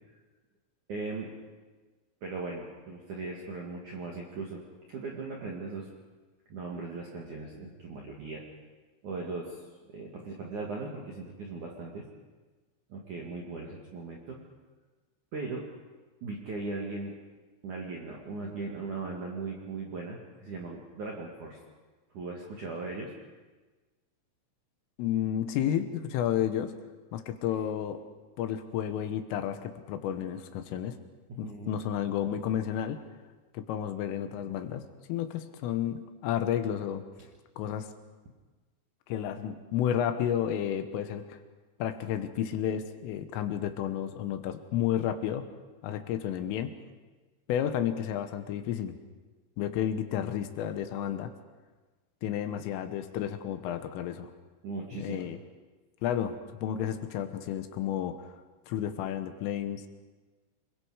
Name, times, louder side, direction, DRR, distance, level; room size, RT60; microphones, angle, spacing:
voice 1, 0.9-1.3 2.2-4.6 4.9-5.9 6.5-8.4 9.0-9.6 9.9-12.1 12.9-14.4 15.3-15.6 16.2-17.1 17.6-21.6 22.1-23.1 27.5-27.6 31.4-31.8 52.4-52.6 54.6-55.3, right 3 dB, 55° right, -2 dB, 2.4 m, -38 dB
voice 2, 25.0-26.7 27.1-28.0 28.4-31.0 31.4-33.0 33.5-34.8 35.1-37.1 37.6-37.9 39.1-41.4 41.8-45.5 45.8-46.7 47.5-49.0 49.6-51.3 52.2-54.3 55.0-55.4 56.0-58.2 58.7-59.8, left 10 dB, 80° left, 9 dB, 3.5 m, -31 dB
27.5 x 22.0 x 4.9 m, 1.3 s
omnidirectional pair, 6.0 m